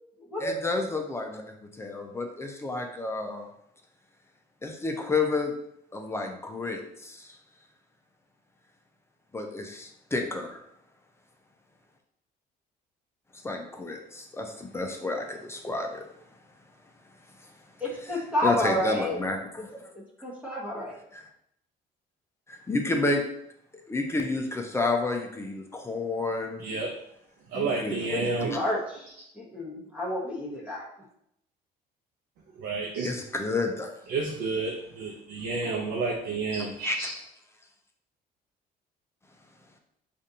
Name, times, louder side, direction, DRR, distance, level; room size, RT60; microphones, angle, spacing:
voice 1, 0.4-3.5 4.6-5.5 5.9-7.4 9.3-10.6 13.4-16.0 18.1-19.9 21.1-21.2 22.5-23.2 23.9-26.6 27.5-28.3 33.0-33.9 36.8-37.1, left 3 dB, 15° left, 2 dB, 0.5 m, -30 dB
voice 2, 17.8-19.2 19.9-21.0 28.1-28.2 28.5-29.1 29.4-30.9, left 1 dB, 10° right, -4 dB, 1.0 m, -30 dB
voice 3, 26.6-26.9 27.5-28.6 32.6-33.1 34.1-37.1, right 3 dB, 70° right, -2 dB, 0.7 m, -30 dB
5.0 x 2.5 x 2.7 m, 0.75 s
cardioid pair, 110°, 17 cm